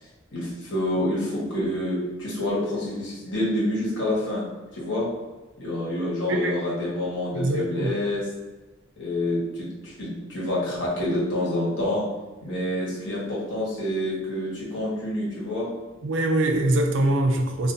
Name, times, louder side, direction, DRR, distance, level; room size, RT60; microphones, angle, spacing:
voice 1, 0.3-4.5 4.7-5.1 5.6-8.3 9.0-12.1 12.4-15.7, left 1 dB, 75° left, -6 dB, 1.1 m, -27 dB
voice 2, 7.3-7.9 16.0-17.7, right 1 dB, 75° right, 3 dB, 0.4 m, -23 dB
2.4 x 2.4 x 2.5 m, 1.2 s
head